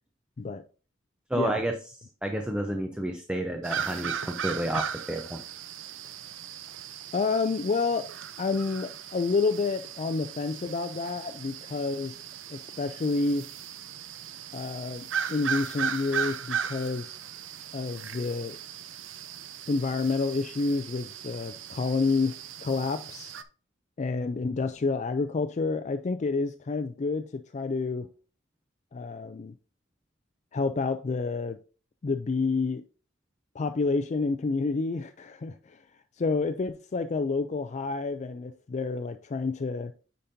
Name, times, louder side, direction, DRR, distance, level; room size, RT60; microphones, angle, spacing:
voice 1, 1.3-1.7 2.2-5.4, right 1 dB, 5° right, 0.6 m, -30 dB
sound 1, 3.6-23.4, right 8 dB, 70° right, 0.6 m, -37 dB
voice 2, 7.1-8.1 8.4-12.2 12.5-13.5 14.5-17.1 17.7-18.6 19.7-22.3 22.6-23.3 24.0-28.1 28.9-29.5 30.5-31.6 32.0-32.8 33.5-35.8 36.2-39.9, left 4 dB, 35° left, 0.4 m, -29 dB
10.0 x 5.2 x 2.7 m
head